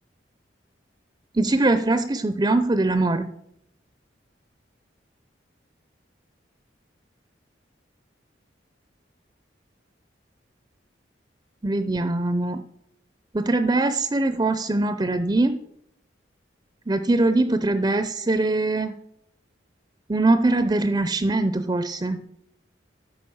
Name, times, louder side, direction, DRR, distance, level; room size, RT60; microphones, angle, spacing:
voice 1, 1.3-3.3 11.6-12.6 13.3-15.6 16.9-18.9 20.1-22.2, right 2 dB, 25° right, 10 dB, 0.5 m, -22 dB
11.0 x 6.7 x 7.0 m, 0.74 s
head